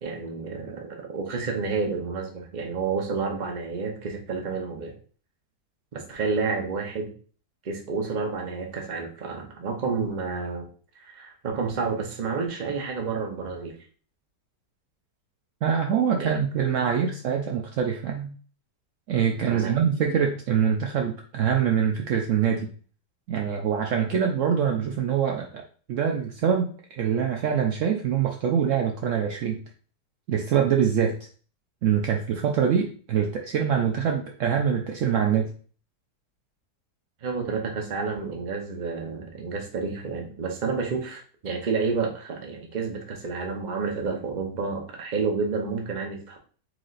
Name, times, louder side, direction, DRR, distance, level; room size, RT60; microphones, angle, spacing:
voice 1, 0.0-4.9 5.9-7.1 7.6-10.7 11.0-13.7 16.2-16.4 19.4-19.7 37.2-46.4, right 4 dB, 40° right, 1 dB, 0.6 m, -30 dB
voice 2, 15.6-18.4 19.1-22.7 23.3-25.6 25.9-29.6 30.3-31.2 31.8-35.5, right 8 dB, 80° right, 2 dB, 0.7 m, -24 dB
4.8 x 3.8 x 2.4 m, 0.42 s
omnidirectional pair, 1.9 m